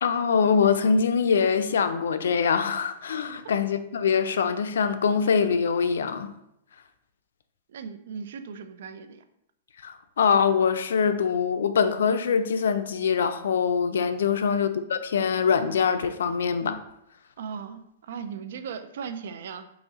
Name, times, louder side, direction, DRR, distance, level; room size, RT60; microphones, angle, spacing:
voice 1, 0.0-6.3 9.8-16.8, left 6 dB, 90° left, 0.4 m, -23 dB
voice 2, 7.7-9.2 14.3-14.7 17.4-19.7, right 6 dB, 70° right, 0.4 m, -38 dB
4.0 x 2.9 x 3.6 m
hypercardioid pair, 160°, 0 cm